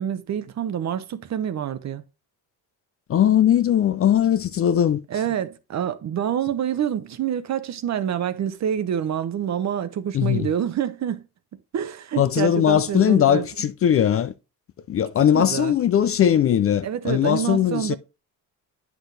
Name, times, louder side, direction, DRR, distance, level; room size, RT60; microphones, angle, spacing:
voice 1, 0.0-2.0 5.1-11.3 11.5-13.4 15.3-15.7 16.8-18.0, right 9 dB, 45° right, 0.9 m, -27 dB
voice 2, 3.1-5.0 10.1-10.5 12.2-14.3 14.9-17.9, left 10 dB, 40° left, 0.4 m, -19 dB
9.9 x 6.1 x 3.3 m
cardioid pair, 145°, 38 cm